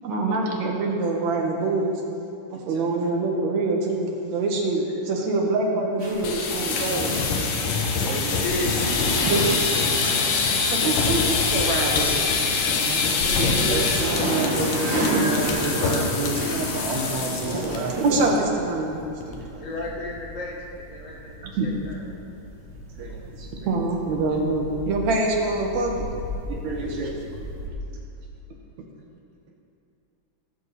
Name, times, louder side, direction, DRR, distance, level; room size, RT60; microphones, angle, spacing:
voice 1, 0.0-1.9 2.5-7.1 8.1-8.2 9.3-10.3 10.7-12.2 12.8-19.0 19.3-19.7 21.4-21.7 23.7-26.0, right 2 dB, 65° right, 0 dB, 2.3 m, -26 dB
sound 1, 6.0-18.2, right 1 dB, 45° right, 3.6 m, -31 dB
sound 2, 6.1-17.8 18.1-18.4 18.7-18.8 19.2-19.6, left 5 dB, 85° left, 2.7 m, -24 dB
voice 2, 8.1-8.7 13.2-14.5 19.6-22.1 26.7-27.1, equal, 40° left, -3 dB, 1.1 m, -34 dB
sound 3, 16.5-27.7, left 1 dB, 30° right, 2.2 m, -40 dB
voice 3, 23.0-23.7 26.5-27.1, right 3 dB, 90° right, -5 dB, 2.8 m, -35 dB
17.0 x 7.2 x 4.2 m, 2.6 s
omnidirectional pair, 3.7 m